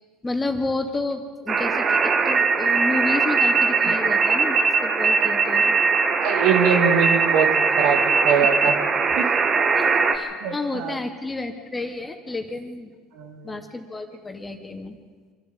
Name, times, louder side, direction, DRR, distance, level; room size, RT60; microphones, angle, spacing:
voice 1, 0.2-5.8 9.8-12.9 13.4-15.0, left 2 dB, 20° left, 4 dB, 2.6 m, -30 dB
sound 1, 1.5-10.2, right 4 dB, 40° right, 2.1 m, -20 dB
voice 2, 6.2-7.5 7.8-8.8 9.2-9.3 10.4-11.0 13.2-13.6, right 7 dB, 70° right, 5 dB, 2.2 m, -23 dB
25.0 x 12.0 x 8.8 m, 1.5 s
hypercardioid pair, 85°, 0 cm